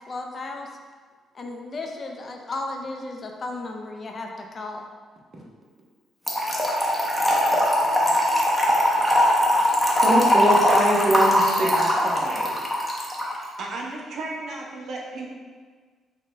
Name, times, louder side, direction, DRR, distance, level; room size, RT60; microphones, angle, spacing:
voice 1, 0.1-0.7 1.3-4.9, left 2 dB, 40° left, 2 dB, 0.5 m, -34 dB
Trickle dribble / Fill (with liquid), 6.3-13.4, left 1 dB, 5° left, 0.8 m, -21 dB
voice 2, 7.7-8.3 11.4-11.9 13.6-15.3, right 3 dB, 65° right, -1 dB, 0.6 m, -35 dB
voice 3, 10.0-12.6, right 1 dB, 40° right, -3 dB, 0.9 m, -23 dB
4.9 x 2.2 x 3.3 m, 1.5 s
cardioid pair, 90°, 0 cm